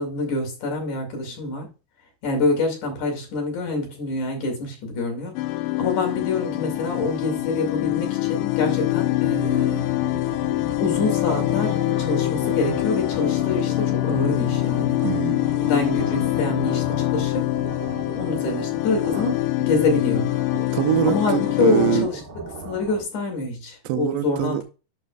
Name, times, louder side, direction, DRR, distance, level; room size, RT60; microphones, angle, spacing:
voice 1, 0.0-1.7 2.2-5.4 5.8-9.9 10.8-15.0 15.6-17.5 18.1-20.3 21.1-22.2 22.6-24.6, left 3 dB, 60° left, 3.8 m, -26 dB
sound 1, 5.4-22.0, left 18 dB, 80° left, 2.3 m, -24 dB
sound 2, 8.8-23.0, right 3 dB, 45° right, 1.8 m, -37 dB
voice 2, 15.0-15.4 20.7-22.1 23.9-24.6, right 14 dB, 90° right, 2.3 m, -24 dB
11.5 x 5.3 x 2.3 m
omnidirectional pair, 4.0 m